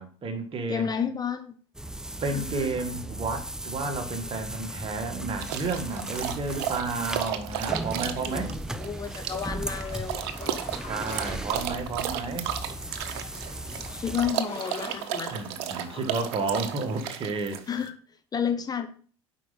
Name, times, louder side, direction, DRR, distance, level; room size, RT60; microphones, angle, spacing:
voice 1, 0.0-0.9 2.2-8.5 10.8-12.5 15.3-17.6, right 3 dB, 40° right, 1.7 m, -31 dB
voice 2, 0.7-1.5 2.3-2.7 8.2-10.5 13.7-15.4 17.7-17.9 18.3-18.9, left 7 dB, 30° left, 0.9 m, -31 dB
sound 1, 1.7-14.4, right 1 dB, 5° right, 0.5 m, -37 dB
sound 2, 5.4-17.9, right 10 dB, 65° right, 0.8 m, -34 dB
sound 3, 9.7-17.0, left 4 dB, 45° left, 2.9 m, -47 dB
7.6 x 5.2 x 4.0 m
hypercardioid pair, 70°, 14 cm